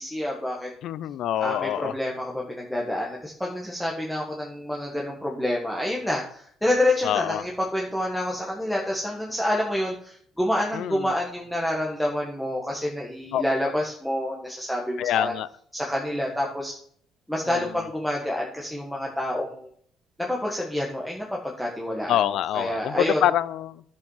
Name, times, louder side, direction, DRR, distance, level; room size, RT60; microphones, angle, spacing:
voice 1, 0.0-0.7 1.4-15.3 15.7-16.7 17.3-19.7 20.2-22.2 22.5-23.2, left 1 dB, ahead, -3 dB, 1.4 m, -28 dB
voice 2, 0.8-1.9 7.0-7.4 10.7-11.1 13.3-13.4 15.0-15.5 17.5-17.7 22.1-23.8, left 11 dB, 65° left, 18 dB, 0.5 m, -25 dB
11.0 x 5.3 x 5.7 m, 0.62 s
cardioid pair, 125°, 0 cm